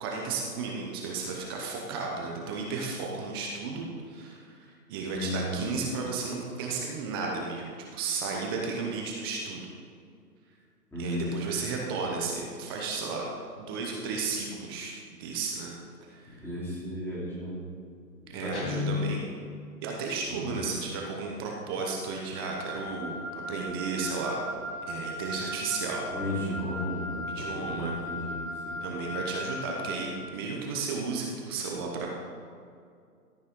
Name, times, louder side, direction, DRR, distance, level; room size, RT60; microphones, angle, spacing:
voice 1, 0.0-9.7 11.0-13.2 13.6-14.9 15.2-15.7 16.0-16.4 18.3-19.3 19.8-24.4 24.9-26.1 27.4-27.9 28.8-32.1, right 4 dB, 15° right, -1 dB, 0.7 m, -33 dB
voice 2, 5.1-5.6 10.9-11.3 16.4-17.7 18.4-18.9 20.3-20.7 26.1-28.4 28.7-28.8, left 1 dB, 5° left, -8 dB, 2.8 m, -34 dB
Guitar, 18.5-19.7, left 5 dB, 45° left, 1.7 m, -33 dB
Wind instrument woodwind instrument, 22.3-30.1, left 1 dB, 30° right, 2.2 m, -38 dB
14.0 x 8.7 x 3.7 m, 2.3 s
hypercardioid pair, 140°, 49 cm